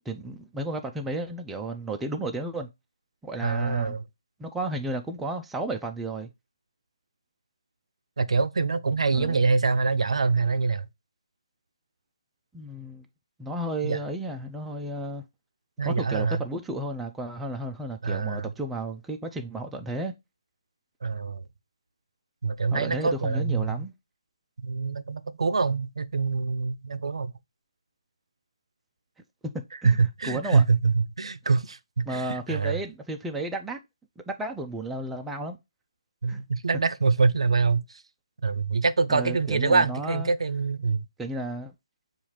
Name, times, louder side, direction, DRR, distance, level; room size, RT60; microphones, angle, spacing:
voice 1, 0.1-2.7 3.2-4.0 4.4-6.3 9.1-9.4 12.5-13.1 13.4-15.2 15.8-20.2 22.7-23.9 29.5-30.0 30.2-30.6 32.1-33.8 34.3-35.6 36.3-36.4 39.1-40.3 41.2-41.7, right 1 dB, 5° right, 0.3 m, -33 dB
voice 2, 3.4-4.0 8.2-10.9 13.8-14.0 15.8-16.4 18.0-18.5 21.0-21.4 22.4-23.8 24.6-27.3 29.8-32.8 36.2-37.8 38.4-41.0, right 4 dB, 75° right, 0.4 m, -25 dB
6.9 x 2.4 x 3.0 m
figure-of-eight pair, 155°, 3 cm